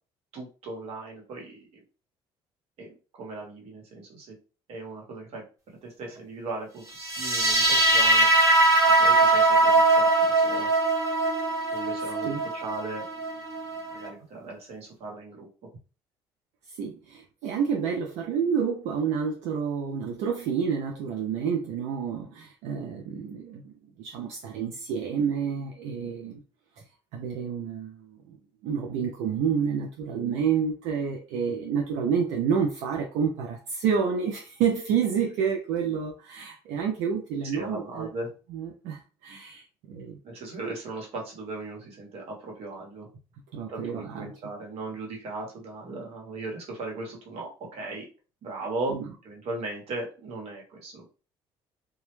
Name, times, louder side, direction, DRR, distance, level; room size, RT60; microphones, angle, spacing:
voice 1, 0.3-1.8 2.8-2.9 3.2-4.3 4.7-5.4 5.8-8.3 9.0-10.7 11.7-13.0 13.9-15.5 37.5-38.3 40.2-43.1 43.7-48.1 48.4-49.0 49.2-51.1, right 2 dB, 65° right, 1.1 m, -37 dB
sound 1, 7.0-14.1, right 2 dB, 30° right, 0.9 m, -21 dB
voice 2, 16.7-23.7 24.0-26.4 27.1-28.2 28.6-38.1 38.5-40.2 40.6-40.7 43.5-44.3 48.9-49.0, right 7 dB, 85° right, 0.4 m, -29 dB
2.2 x 2.0 x 3.0 m
cardioid pair, 90°, 11 cm